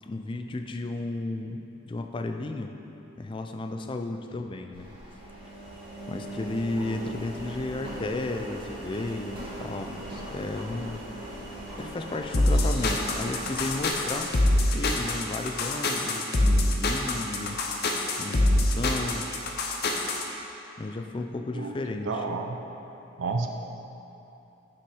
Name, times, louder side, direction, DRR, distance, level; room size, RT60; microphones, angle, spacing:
voice 1, 0.0-2.7 3.2-4.9 6.1-11.1 11.8-14.3 14.7-17.6 18.1-19.3 20.8-22.2, left 2 dB, 25° left, 5 dB, 0.3 m, -33 dB
Engine, 4.7-14.7, right 1 dB, 25° right, 1.5 m, -40 dB
sound 1, 12.3-20.2, left 1 dB, 50° left, 0.7 m, -25 dB
voice 2, 22.1-22.6 23.2-23.5, right 4 dB, 65° right, 4 dB, 0.5 m, -30 dB
6.3 x 5.9 x 4.8 m, 2.9 s
head